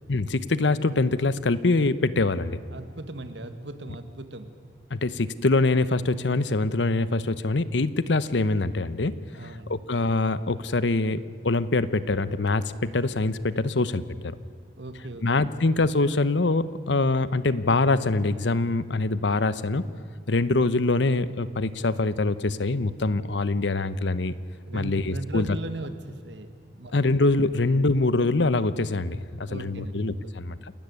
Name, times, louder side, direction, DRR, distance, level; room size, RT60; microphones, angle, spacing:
voice 1, 0.1-2.6 4.9-11.2 11.4-14.3 15.2-19.9 20.3-24.3 24.7-25.5 26.9-30.7, left 2 dB, 75° left, 15 dB, 0.9 m, -24 dB
voice 2, 2.7-4.5 9.3-9.7 14.8-15.5 24.7-26.9 29.5-30.3, right 2 dB, 70° right, 9 dB, 1.8 m, -38 dB
29.0 x 13.5 x 9.7 m, 2.2 s
head